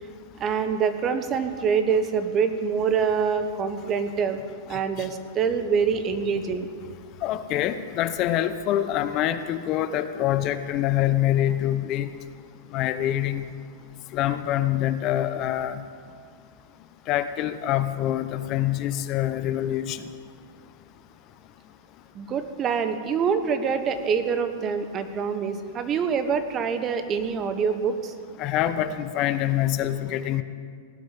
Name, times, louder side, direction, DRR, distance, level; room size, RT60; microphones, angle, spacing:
voice 1, 0.4-4.4 4.7-6.7 22.1-28.1, right 6 dB, 30° right, 9 dB, 1.1 m, -25 dB
voice 2, 7.2-12.1 12.7-13.5 14.1-15.8 17.1-20.0 28.4-30.4, left 12 dB, 45° left, 11 dB, 0.7 m, -25 dB
17.0 x 6.3 x 9.4 m, 2.1 s
hypercardioid pair, 115°, 0 cm